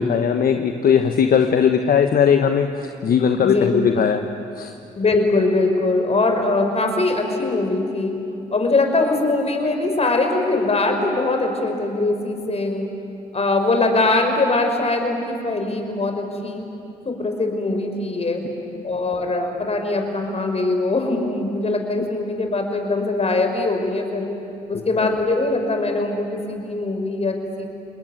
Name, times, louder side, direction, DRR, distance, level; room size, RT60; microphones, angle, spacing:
voice 1, 0.0-4.3 4.6-4.7 25.0-25.1, left 7 dB, 60° left, 7 dB, 1.2 m, -18 dB
voice 2, 5.0-8.1 8.5-12.9 13.3-16.6 17.1-18.4 18.8-24.3 24.7-27.7, left 2 dB, 40° left, 4 dB, 5.2 m, -22 dB
29.0 x 20.5 x 9.7 m, 2.7 s
supercardioid pair, 55°, 17 cm